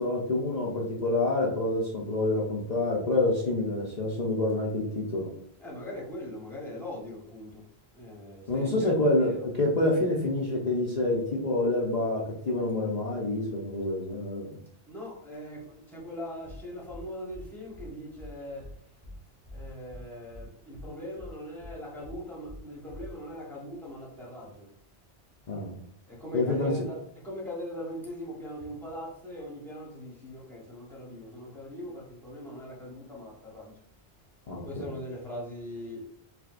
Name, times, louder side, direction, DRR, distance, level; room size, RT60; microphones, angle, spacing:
voice 1, 0.0-5.3 8.5-14.5 25.5-25.7 26.3-26.9 34.5-34.8, left 2 dB, 45° left, 0.7 m, -27 dB
voice 2, 5.6-7.6 7.9-9.5 14.9-18.7 19.5-24.7 26.1-33.7 34.6-36.1, left 1 dB, ahead, 1.1 m, -41 dB
sound 1, 16.4-16.6 16.9-17.0 17.3-17.4 17.7-17.9 18.2-18.3 18.6-18.7 19.0-19.2 19.4-20.0 20.3-20.4 20.7-20.9 21.2-21.3 21.6-21.7 22.0-22.2 22.4-22.6 22.9-23.1, left 1 dB, 35° right, 1.8 m, -44 dB
4.9 x 3.3 x 2.5 m
omnidirectional pair, 1.1 m